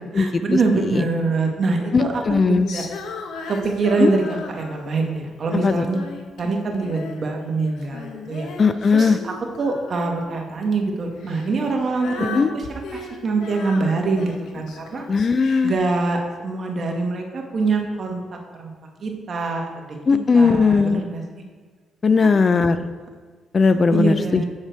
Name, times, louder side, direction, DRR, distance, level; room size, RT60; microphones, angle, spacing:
voice 1, 0.1-2.2 2.5-2.9 3.5-6.0 6.4-8.5 8.9-12.7 12.9-15.0 15.6-18.2 18.5-18.7 19.0-19.9 20.3-21.4 22.2-22.3 23.6-24.4, right 3 dB, 45° right, 1 dB, 1.4 m, -24 dB
voice 2, 1.9-2.7 4.0-4.1 5.6-5.9 8.6-9.2 12.3-12.5 15.1-15.7 20.1-21.0 22.0-22.9 23.5-24.4, left 4 dB, 40° left, 11 dB, 0.4 m, -18 dB
Female singing, 2.7-5.0 5.6-7.3 7.6-10.4 11.2-15.8, left 4 dB, 80° left, 0.9 m, -37 dB
7.3 x 6.6 x 4.5 m, 1.5 s
cardioid pair, 90°, 0 cm